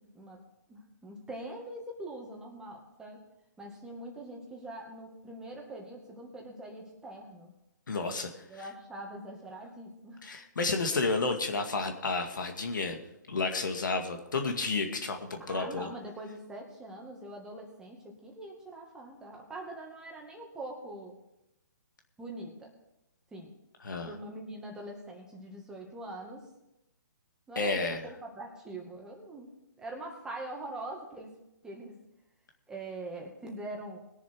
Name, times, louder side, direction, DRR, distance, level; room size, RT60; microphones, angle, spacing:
voice 1, 0.7-3.2 3.6-7.5 8.5-10.2 15.5-21.1 22.2-22.7 23.3-23.5 24.1-26.5 27.5-29.5 29.8-31.3 31.6-32.0 32.7-34.0, right 1 dB, 5° right, 0 dB, 2.1 m, -43 dB
voice 2, 7.9-8.6 10.2-13.0 13.3-15.9 23.8-24.1 27.6-28.0, left 3 dB, 75° left, 4 dB, 2.1 m, -31 dB
21.0 x 7.3 x 4.7 m, 0.88 s
hypercardioid pair, 145°, 10 cm